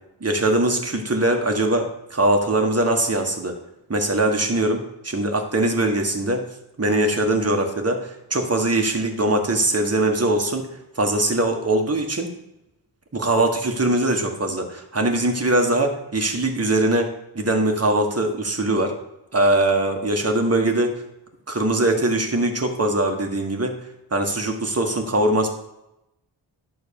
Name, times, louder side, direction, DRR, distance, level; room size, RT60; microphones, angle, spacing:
voice 1, 0.2-3.6 3.9-6.4 6.8-10.7 10.9-12.3 13.1-17.1 17.3-18.9 19.3-20.9 21.5-23.8 24.1-25.5, right 1 dB, 30° right, 3 dB, 1.5 m, -21 dB
11.0 x 3.9 x 7.0 m, 0.88 s
wide cardioid pair, 100°, 47 cm